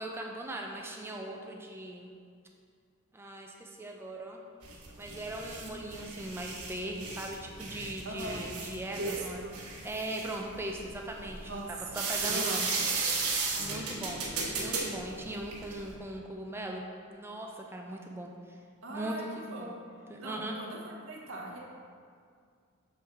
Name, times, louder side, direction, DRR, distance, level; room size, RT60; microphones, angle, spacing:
voice 1, 0.0-2.1 3.1-4.4 5.0-9.5 9.8-12.7 13.6-14.2 14.6-16.8 17.1-18.6 18.9-19.7 20.1-20.5, right 1 dB, 10° right, 1 dB, 0.4 m, -39 dB
sound 1, 4.6-15.9, right 4 dB, 85° right, 1.1 m, -35 dB
voice 2, 8.0-8.4 9.0-9.5 11.5-11.7 12.2-12.8 18.8-19.7 20.2-21.6, right 2 dB, 60° right, -2 dB, 0.9 m, -40 dB
6.9 x 3.5 x 4.4 m, 2.2 s
head